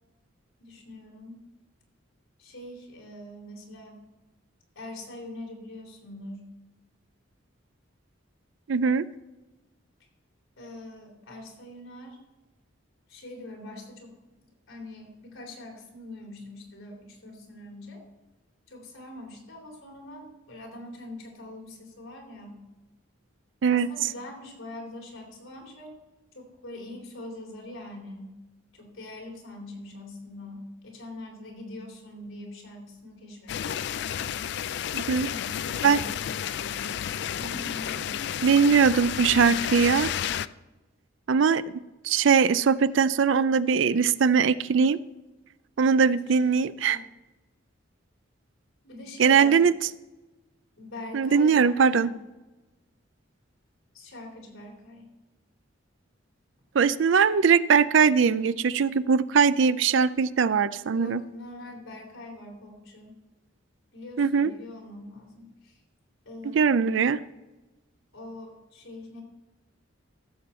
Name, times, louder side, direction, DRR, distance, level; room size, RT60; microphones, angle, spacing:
voice 1, 0.6-1.4 2.4-4.0 4.7-6.5 10.6-12.2 13.1-14.4 14.7-18.0 18.7-22.6 23.7-25.9 26.3-28.3 28.7-33.8 35.0-36.5 37.4-38.2 46.0-46.6 46.9-47.1 48.8-49.6 50.8-52.1 53.9-55.1 60.9-63.1 63.9-65.8 66.2-67.0 68.1-69.2, left 1 dB, 85° left, 0 dB, 3.4 m, -43 dB
voice 2, 8.7-9.0 23.6-23.9 34.9-35.3 35.8-36.0 38.4-40.1 41.3-41.6 42.0-45.0 45.8-47.0 49.2-49.7 51.1-52.1 56.7-61.2 64.2-64.5 66.4-67.2, right 6 dB, 70° right, 16 dB, 0.4 m, -21 dB
sound 1, 33.5-40.5, left 9 dB, 55° left, 0.3 m, -31 dB
15.0 x 7.1 x 4.3 m, 1.1 s
head